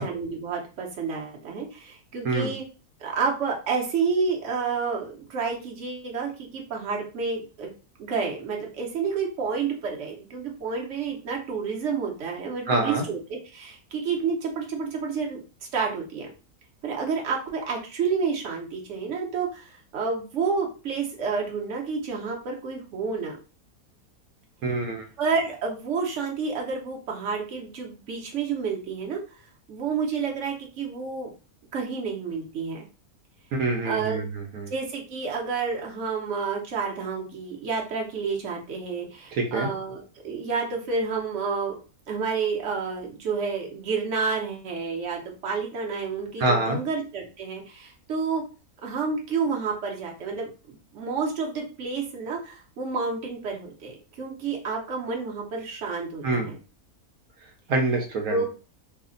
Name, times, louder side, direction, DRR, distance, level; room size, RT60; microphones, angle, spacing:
voice 1, 0.0-2.6 3.0-7.7 8.0-15.4 15.7-16.3 16.8-23.4 25.2-29.2 29.7-31.3 31.7-32.9 33.8-34.2 34.7-41.8 42.1-48.4 48.8-56.6 58.3-58.4, right 5 dB, 60° right, -1 dB, 1.2 m, -29 dB
voice 2, 12.7-13.1 24.6-25.1 33.6-34.7 39.3-39.7 46.4-46.8 56.2-56.5 57.7-58.4, right 2 dB, 80° right, 2 dB, 1.2 m, -26 dB
3.3 x 2.1 x 3.8 m, 0.34 s
omnidirectional pair, 1.5 m